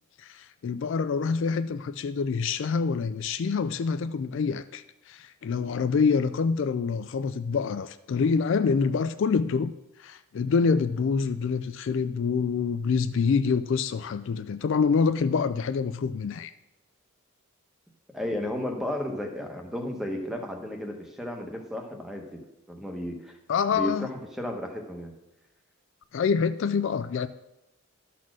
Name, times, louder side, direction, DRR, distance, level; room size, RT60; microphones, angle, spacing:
voice 1, 0.2-9.7 10.0-16.5 23.5-24.1 26.1-27.3, left 5 dB, 55° left, 11 dB, 0.3 m, -26 dB
voice 2, 18.1-22.4 22.7-23.3 23.7-25.1, left 1 dB, ahead, 3 dB, 1.0 m, -33 dB
12.5 x 4.2 x 6.1 m, 0.94 s
head